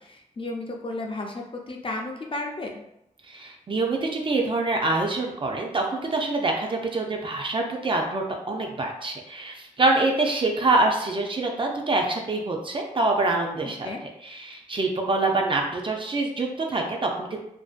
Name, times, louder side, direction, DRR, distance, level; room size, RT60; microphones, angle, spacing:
voice 1, 0.0-2.8 13.8-14.0, left 2 dB, 40° left, 1 dB, 0.4 m, -33 dB
voice 2, 3.3-13.9 14.2-17.4, right 2 dB, 40° right, 1 dB, 0.4 m, -25 dB
2.5 x 2.1 x 2.4 m, 0.80 s
wide cardioid pair, 130°, 14 cm